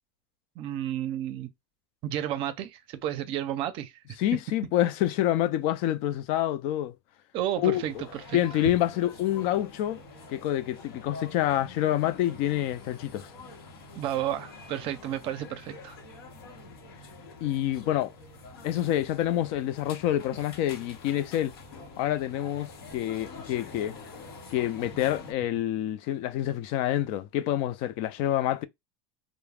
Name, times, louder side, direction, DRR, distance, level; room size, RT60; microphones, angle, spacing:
voice 1, 0.6-1.5 2.0-3.9 7.3-7.9 8.3-8.4 14.0-16.0, right 11 dB, 45° right, 0.5 m, -31 dB
voice 2, 4.2-6.9 7.6-7.8 8.3-10.0 10.3-13.3 17.4-18.1 18.6-21.5 22.0-24.0 24.5-28.7, left 12 dB, 55° left, 0.4 m, -27 dB
sound 1, 7.7-25.3, left 3 dB, 85° left, 0.8 m, -46 dB
2.3 x 2.0 x 3.2 m
supercardioid pair, 125°, 12 cm